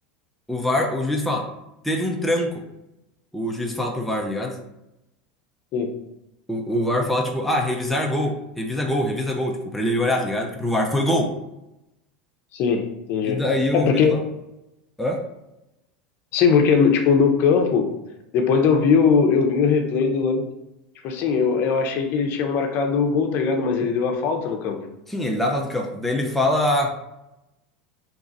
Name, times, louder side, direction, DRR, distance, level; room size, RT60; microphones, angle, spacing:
voice 1, 0.5-1.4 1.8-2.6 3.3-4.6 6.5-11.3 13.2-14.2 15.0-15.2 25.1-26.9, left 1 dB, ahead, 0 dB, 0.5 m, -24 dB
voice 2, 12.5-12.8 13.1-13.4 13.7-14.1 16.3-17.9 18.3-20.4 21.0-24.8, left 5 dB, 50° left, 4 dB, 0.7 m, -20 dB
2.9 x 2.4 x 4.0 m, 0.90 s
hypercardioid pair, 100°, 5 cm